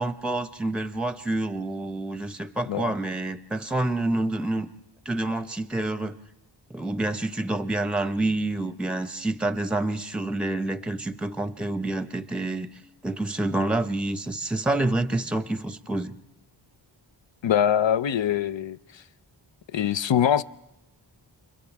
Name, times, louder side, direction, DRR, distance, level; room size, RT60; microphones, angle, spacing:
voice 1, 0.0-4.7 5.0-6.2 6.7-12.7 13.0-16.2, right 2 dB, ahead, 0.8 m, -28 dB
voice 2, 17.4-19.0 19.7-20.4, left 9 dB, 70° left, 0.7 m, -23 dB
30.0 x 26.0 x 3.5 m
wide cardioid pair, 80°, 46 cm